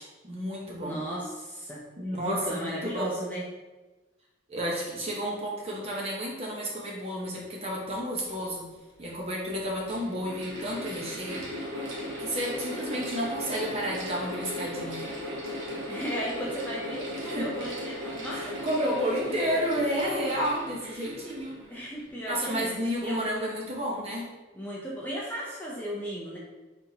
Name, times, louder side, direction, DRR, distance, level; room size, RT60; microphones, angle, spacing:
voice 1, 0.0-1.0 2.0-3.1 4.5-8.7 9.0-11.5 12.2-15.0 17.2-17.5 18.3-21.6 22.3-24.3, equal, 30° right, -3 dB, 0.8 m, -31 dB
voice 2, 0.8-3.4 15.9-19.4 20.8-21.1 21.7-22.7 23.0-23.2 24.5-26.4, equal, 10° left, -5 dB, 0.5 m, -35 dB
Mechanical fan, 8.6-8.7 9.5-22.2, left 1 dB, 80° right, 1.1 m, -37 dB
4.2 x 3.5 x 2.8 m, 1.2 s
head